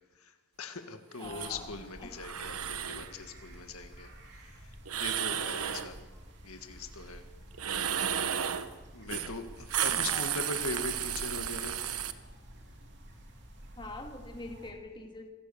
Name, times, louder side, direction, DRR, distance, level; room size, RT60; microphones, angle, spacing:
voice 1, 0.1-6.0 6.4-7.2 8.9-11.9, left 3 dB, 75° left, 6 dB, 1.8 m, -41 dB
voice 2, 1.2-1.7 2.0-2.1 5.6-5.8 10.1-10.3 13.8-15.3, left 2 dB, 20° left, 3 dB, 2.3 m, -44 dB
sound 1, 1.2-14.7, equal, 55° right, 3.0 m, -50 dB
sound 2, 1.2-1.5 2.2-3.1 4.9-5.9 7.5-8.7 9.1-9.3 9.6-12.1, right 9 dB, 80° right, 1.1 m, -33 dB
26.5 x 17.0 x 7.1 m, 1.3 s
head